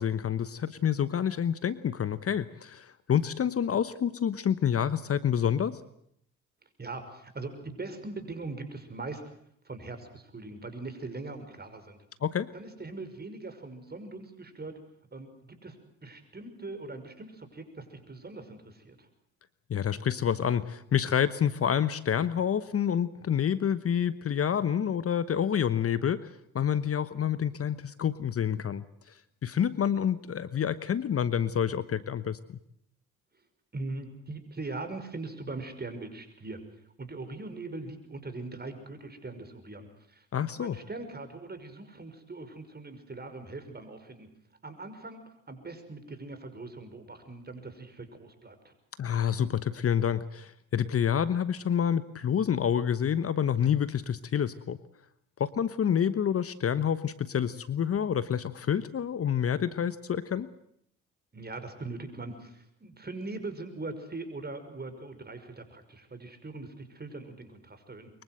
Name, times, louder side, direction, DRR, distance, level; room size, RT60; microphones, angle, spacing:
voice 1, 0.0-5.8 12.2-12.5 19.7-29.2 29.4-32.6 40.3-40.8 49.0-54.8 55.4-60.5, left 8 dB, 40° left, 15 dB, 1.1 m, -28 dB
voice 2, 6.8-9.4 9.6-12.0 12.5-14.7 15.1-15.8 16.0-19.1 33.7-36.6 37.0-44.3 44.6-48.7 61.3-68.1, right 3 dB, 30° right, 9 dB, 5.9 m, -41 dB
24.0 x 22.5 x 8.0 m, 0.70 s
hypercardioid pair, 50°, 35 cm